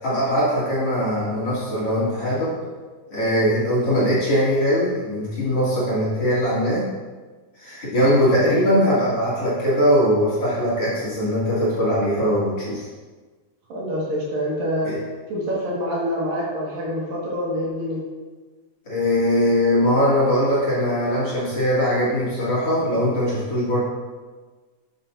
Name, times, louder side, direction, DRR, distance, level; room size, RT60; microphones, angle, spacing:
voice 1, 0.0-2.6 3.1-6.9 7.6-12.8 14.8-15.0 18.8-23.8, equal, 40° left, -9 dB, 3.1 m, -21 dB
voice 2, 13.7-14.9 15.3-18.0, equal, 60° right, -5 dB, 3.3 m, -26 dB
12.5 x 7.8 x 2.7 m, 1.3 s
omnidirectional pair, 4.7 m